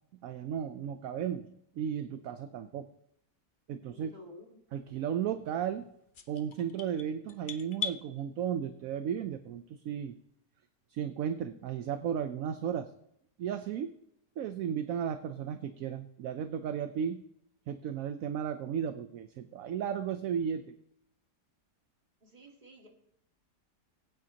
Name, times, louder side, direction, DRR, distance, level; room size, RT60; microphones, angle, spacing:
voice 1, 0.2-2.9 3.7-4.1 4.7-5.9 6.3-10.1 10.9-12.9 13.4-13.9 14.4-17.2 17.7-20.7, right 8 dB, 65° right, 9 dB, 0.9 m, -34 dB
voice 2, 3.9-4.6 22.2-22.9, left 1 dB, 25° right, 0 dB, 2.0 m, -52 dB
sound 1, 6.1-8.0, left 6 dB, 50° left, 0.6 m, -38 dB
21.0 x 8.9 x 2.8 m, 0.77 s
omnidirectional pair, 1.8 m